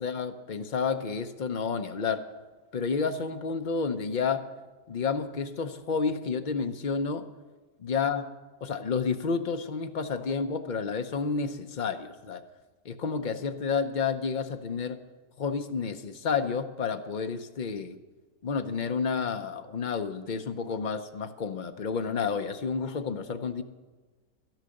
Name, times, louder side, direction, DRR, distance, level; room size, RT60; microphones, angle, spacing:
voice 1, 0.0-2.2 2.7-4.4 4.9-7.2 7.8-8.2 8.6-12.4 12.8-15.0 15.4-18.0 18.4-23.6, left 5 dB, 45° left, 7 dB, 0.6 m, -30 dB
12.5 x 10.5 x 6.5 m, 1.3 s
omnidirectional pair, 1.6 m